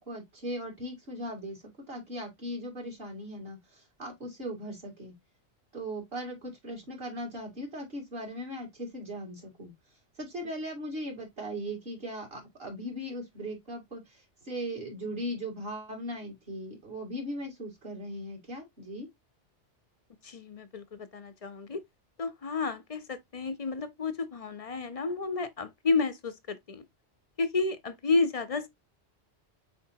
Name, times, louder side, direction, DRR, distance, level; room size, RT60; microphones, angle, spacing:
voice 1, 0.0-5.1 5.7-9.7 10.2-19.1, equal, 55° right, 2.6 m, -38 dB
voice 2, 20.2-21.8 22.2-26.8 27.4-28.7, left 4 dB, 45° left, 0.5 m, -31 dB
4.5 x 4.3 x 2.7 m
omnidirectional pair, 1.2 m